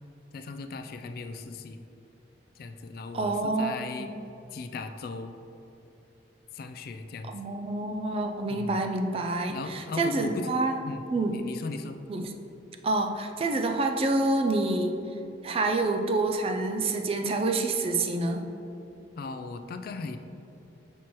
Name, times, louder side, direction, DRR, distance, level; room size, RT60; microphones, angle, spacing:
voice 1, 0.3-1.8 2.6-4.1 4.5-5.3 6.5-7.3 8.5-8.8 9.5-10.6 10.8-11.0 11.3-12.0 19.2-20.2, left 3 dB, 55° left, 8 dB, 0.3 m, -37 dB
voice 2, 3.1-4.1 7.3-10.8 11.1-11.3 12.1-12.3 12.8-14.9 15.4-18.4, right 2 dB, 30° right, 4 dB, 0.4 m, -27 dB
7.0 x 4.4 x 3.0 m, 2.9 s
head